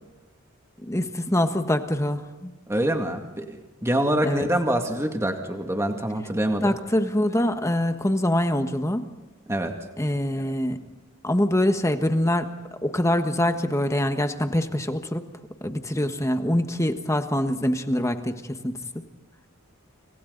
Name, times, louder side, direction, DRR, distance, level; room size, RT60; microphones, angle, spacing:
voice 1, 0.8-2.5 4.2-4.5 6.6-9.0 10.0-10.8 11.2-12.5 12.8-15.3 15.6-19.0, left 1 dB, 15° left, 7 dB, 1.4 m, -24 dB
voice 2, 2.7-6.7 9.5-9.7, right 1 dB, 15° right, 4 dB, 2.2 m, -25 dB
30.0 x 27.5 x 4.0 m, 1.2 s
head